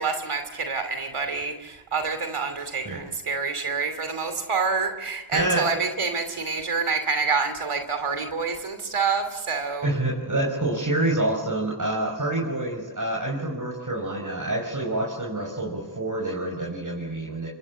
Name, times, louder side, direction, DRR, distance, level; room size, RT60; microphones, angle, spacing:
voice 1, 0.0-10.0, right 5 dB, 90° right, 8 dB, 2.8 m, -27 dB
voice 2, 5.3-5.7 9.8-17.5, right 1 dB, 40° right, -2 dB, 5.8 m, -27 dB
25.0 x 22.0 x 8.7 m, 1.2 s
cardioid pair, 45°, 49 cm